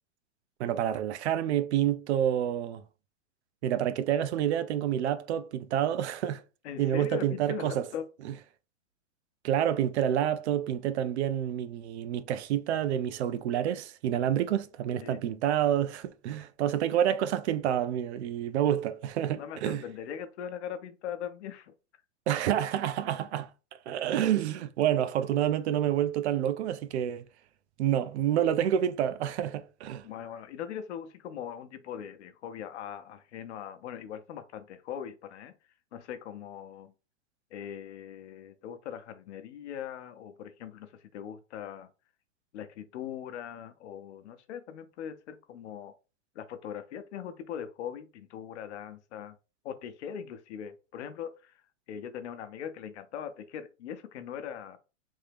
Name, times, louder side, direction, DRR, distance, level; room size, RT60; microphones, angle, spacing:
voice 1, 0.6-2.8 3.6-6.4 6.8-7.9 9.4-19.8 22.3-23.5 23.9-27.3 27.8-30.0, right 10 dB, 65° right, 0.6 m, -28 dB
voice 2, 6.6-8.1 14.3-14.4 15.0-15.2 19.4-21.7 30.0-35.5 35.9-36.9 37.5-41.9 42.5-45.9 46.3-49.4 49.6-51.5 51.9-54.8, left 9 dB, 65° left, 0.8 m, -40 dB
3.6 x 2.7 x 3.4 m
hypercardioid pair, 125°, 37 cm